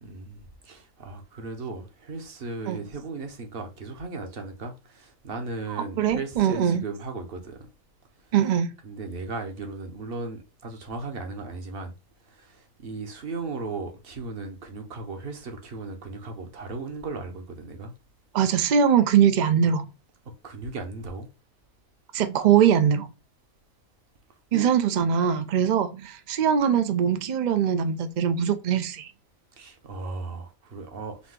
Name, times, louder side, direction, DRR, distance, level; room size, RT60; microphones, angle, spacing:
voice 1, 0.0-7.6 8.8-11.9 12.3-17.9 20.4-21.3 24.5-24.7 29.6-31.3, right 3 dB, 50° right, 1.0 m, -36 dB
voice 2, 5.7-6.9 8.3-8.7 18.3-19.9 22.1-23.1 24.5-29.1, right 8 dB, 75° right, 0.4 m, -22 dB
4.0 x 2.8 x 3.6 m
omnidirectional pair, 1.4 m